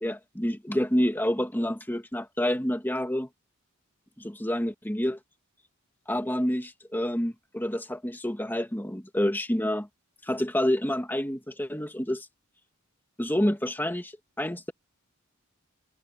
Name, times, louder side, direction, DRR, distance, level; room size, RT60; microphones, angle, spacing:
voice 1, 0.0-3.3 4.2-5.2 6.1-9.9 10.2-12.3 13.2-14.7, equal, 10° left, 2.1 m, -28 dB
head